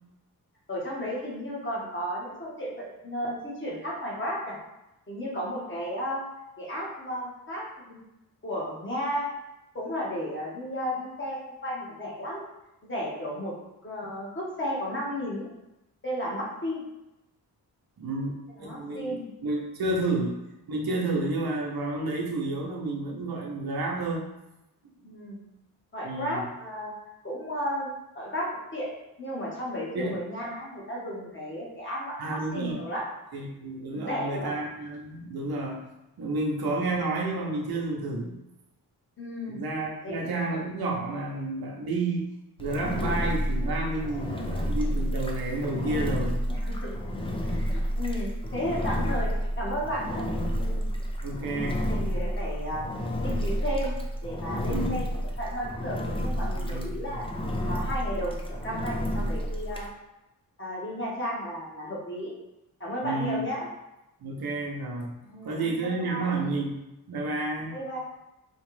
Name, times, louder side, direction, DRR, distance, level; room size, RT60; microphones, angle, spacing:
voice 1, 0.7-4.6 5.1-6.2 6.6-8.0 8.4-9.3 9.7-12.4 12.8-13.5 13.8-15.5 16.0-16.8 18.6-19.3 25.0-25.4 25.9-26.9 27.2-28.9 29.2-33.0 33.9-34.5 39.2-39.6 40.0-40.3 46.5-50.9 51.8-52.8 53.2-55.1 55.4-57.3 57.7-59.9 60.6-62.3 62.8-63.7 65.2-66.4 67.7-68.0, equal, 30° left, -4 dB, 1.4 m, -34 dB
voice 2, 18.0-20.4 20.7-24.2 26.0-26.5 29.9-30.2 32.2-32.8 33.3-35.8 36.2-38.4 39.5-46.5 51.2-51.8 54.6-55.0 56.5-57.0 63.0-63.4 64.2-65.2 65.4-66.8 67.1-67.8, right 2 dB, 70° right, -1 dB, 0.9 m, -30 dB
Engine, 42.6-59.9, equal, 15° left, 0.5 m, -30 dB
4.3 x 2.5 x 3.2 m, 0.93 s
cardioid pair, 80°, 38 cm